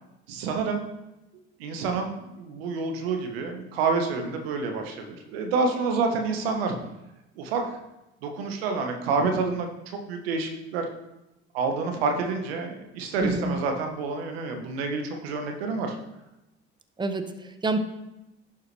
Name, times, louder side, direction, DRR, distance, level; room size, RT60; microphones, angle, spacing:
voice 1, 0.3-0.8 1.6-6.8 7.4-7.7 8.2-9.8 10.1-10.9 11.5-15.9, right 4 dB, 90° right, 4 dB, 1.2 m, -28 dB
voice 2, 13.2-13.6 17.0-17.8, right 2 dB, 15° right, 8 dB, 0.9 m, -27 dB
11.0 x 4.8 x 3.3 m, 0.94 s
hypercardioid pair, 65°, 30 cm